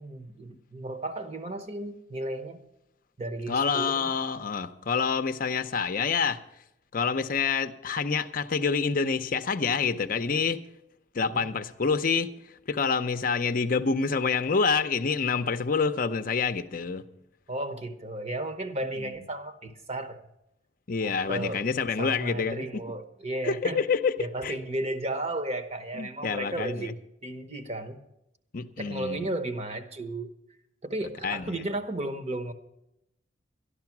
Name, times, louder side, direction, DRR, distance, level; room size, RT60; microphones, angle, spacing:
voice 1, 0.0-2.6 3.2-4.1 11.2-11.4 17.5-20.2 21.0-21.7 22.0-23.8 24.2-26.9 27.2-28.0 28.8-30.3 30.8-32.5, right 1 dB, 35° right, 1.0 m, -34 dB
voice 2, 3.5-6.4 6.9-10.6 11.1-12.3 12.7-17.0 19.0-19.1 20.9-22.8 23.4-24.1 24.4-24.5 25.9-26.9 28.5-29.3 31.2-31.6, left 5 dB, 50° left, 0.6 m, -27 dB
13.0 x 11.5 x 6.0 m
head